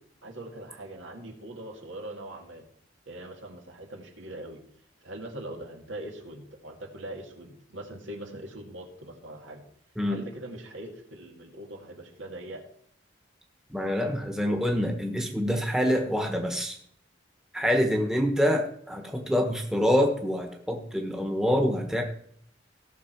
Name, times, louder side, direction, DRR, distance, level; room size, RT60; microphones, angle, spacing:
voice 1, 0.2-2.6 3.1-4.6 5.0-9.6 10.1-12.6 17.8-18.0, right 1 dB, 80° right, 2 dB, 2.2 m, -41 dB
voice 2, 13.7-16.8 17.5-22.0, equal, 5° right, 2 dB, 1.2 m, -26 dB
17.0 x 6.4 x 4.6 m, 0.66 s
head